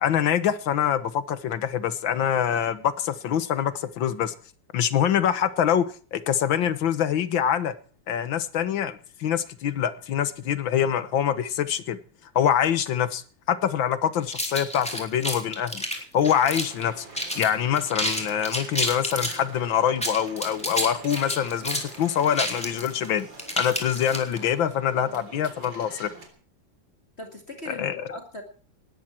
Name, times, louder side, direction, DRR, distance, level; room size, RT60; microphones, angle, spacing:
voice 1, 0.0-4.3 4.7-5.9 6.1-7.7 8.1-12.0 12.4-15.8 16.1-17.1 17.4-23.3 23.6-26.1 27.7-28.0, left 9 dB, 80° left, 1.9 m, -25 dB
sound 1, 14.3-16.8 17.1-17.5 17.8-19.4 19.9-24.5, equal, 5° left, 3.8 m, -29 dB
sound 2, 16.3-26.3, right 3 dB, 70° right, 4.3 m, -46 dB
voice 2, 27.2-28.4, left 1 dB, 35° left, 2.3 m, -39 dB
19.0 x 14.0 x 4.5 m
omnidirectional pair, 2.1 m